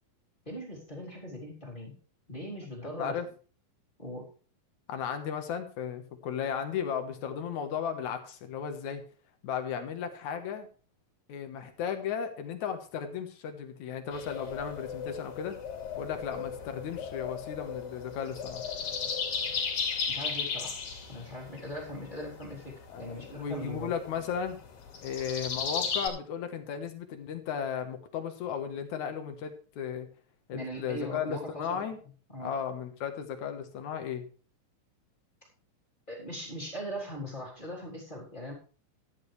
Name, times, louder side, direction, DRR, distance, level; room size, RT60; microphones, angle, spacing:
voice 1, 0.4-2.0 2.3-3.2 4.0-4.3 20.1-20.8 21.1-23.9 30.5-31.8 32.3-32.6 36.1-38.5, equal, 15° left, -3 dB, 3.2 m, -40 dB
voice 2, 4.9-9.0 9.4-10.7 11.3-15.6 16.0-18.7 22.9-24.6 25.0-30.1 30.5-32.0 32.4-34.2, left 7 dB, 65° left, 7 dB, 2.5 m, -35 dB
sound 1, 14.1-26.1, left 6 dB, 80° left, 4.5 m, -36 dB
14.0 x 10.5 x 3.3 m, 0.38 s
omnidirectional pair, 3.9 m